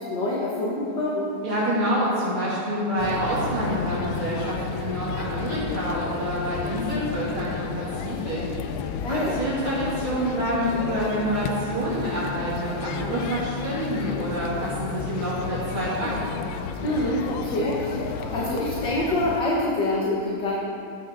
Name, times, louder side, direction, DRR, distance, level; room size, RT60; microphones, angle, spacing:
voice 1, 0.0-1.3 9.0-9.4 16.8-20.5, left 1 dB, 55° left, -5 dB, 2.1 m, -26 dB
voice 2, 1.4-16.3, right 1 dB, 70° right, -9 dB, 3.3 m, -27 dB
sound 1, 3.0-19.4, left 6 dB, 75° left, 1.3 m, -32 dB
14.5 x 12.0 x 3.7 m, 2.6 s
omnidirectional pair, 2.4 m